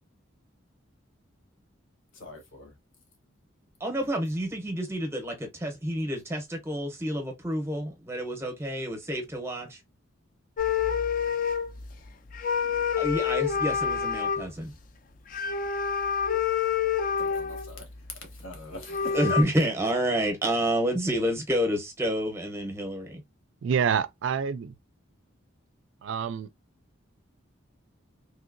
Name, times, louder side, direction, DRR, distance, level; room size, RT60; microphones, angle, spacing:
voice 1, 2.1-2.7 17.2-19.2, left 2 dB, 75° left, 1.2 m, -44 dB
voice 2, 3.8-9.8 13.0-14.7 19.1-23.2, equal, 15° right, 0.7 m, -29 dB
sound 1, 10.6-11.9 12.3-14.5 15.3-17.8 18.5-18.6 18.8-19.4, left 7 dB, 40° left, 0.3 m, -27 dB
voice 3, 23.6-24.7 26.0-26.5, right 7 dB, 65° right, 0.3 m, -27 dB
3.2 x 2.8 x 2.5 m
head